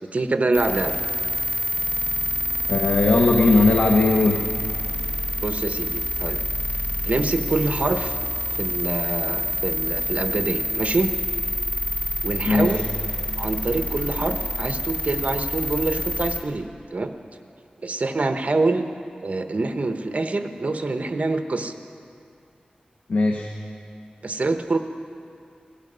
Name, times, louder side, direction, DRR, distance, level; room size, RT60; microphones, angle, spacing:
voice 1, 0.1-0.9 5.4-6.4 7.0-8.2 8.6-11.1 12.2-12.8 13.4-17.1 17.8-18.8 19.2-21.7 24.2-24.8, right 3 dB, 50° right, 7 dB, 0.9 m, -25 dB
sound 1, 0.5-16.4, left 1 dB, 65° left, 2.0 m, -27 dB
voice 2, 2.7-4.4 12.4-12.8 23.1-23.5, left 3 dB, 80° left, 2 dB, 1.0 m, -18 dB
17.5 x 13.0 x 5.5 m, 2.4 s
wide cardioid pair, 85°, 3 cm